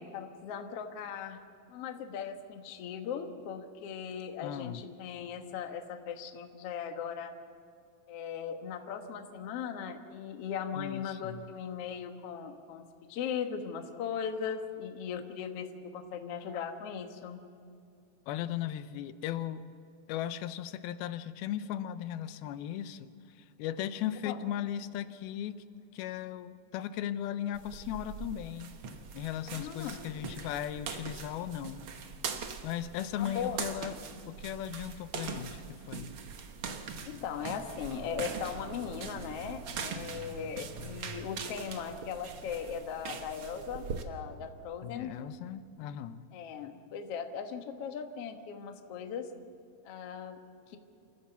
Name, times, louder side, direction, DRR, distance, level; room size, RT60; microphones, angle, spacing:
voice 1, 0.0-1.4 1.7-7.3 8.1-17.4 24.2-24.4 29.5-30.0 33.2-33.6 37.1-45.1 46.3-49.3 49.9-50.8, left 7 dB, 55° left, 6 dB, 1.7 m, -38 dB
voice 2, 4.4-4.9 10.7-11.5 18.3-19.7 20.1-25.6 25.9-28.7 29.1-31.9 32.6-34.0 34.3-36.1 44.8-46.3, left 11 dB, 85° left, 12 dB, 2.6 m, -37 dB
sound 1, 27.5-44.0, right 5 dB, 80° right, 1.1 m, -42 dB
27.0 x 14.5 x 7.0 m, 2.5 s
omnidirectional pair, 4.3 m